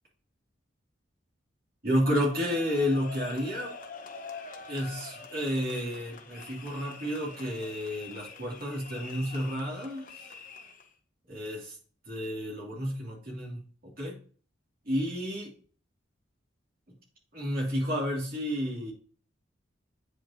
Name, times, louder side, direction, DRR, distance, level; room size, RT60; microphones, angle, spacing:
voice 1, 1.8-3.7 4.7-10.1 11.3-11.7 12.1-13.6 14.0-14.2 14.9-15.5 17.3-18.9, equal, 50° right, -3 dB, 2.8 m, -31 dB
sound 1, 2.0-10.9, left 4 dB, 45° left, 0.9 m, -45 dB
8.6 x 5.3 x 2.9 m, 0.41 s
head